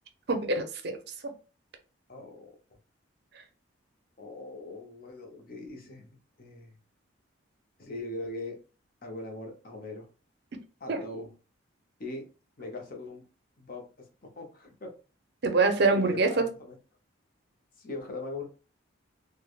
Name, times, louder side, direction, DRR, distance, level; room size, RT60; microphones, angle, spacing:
voice 1, 0.3-1.0 1.2-1.3 10.9-11.0 15.4-16.4, right 3 dB, 55° right, 6 dB, 0.5 m, -25 dB
voice 2, 2.1-2.5 4.2-6.7 7.8-8.6 9.0-10.1 10.8-11.3 12.0-12.2 12.6-13.2 13.6-13.8 14.2-14.9 15.9-16.8 17.8-18.4, left 2 dB, 45° left, 2 dB, 0.7 m, -40 dB
3.3 x 2.1 x 2.3 m, 0.34 s
head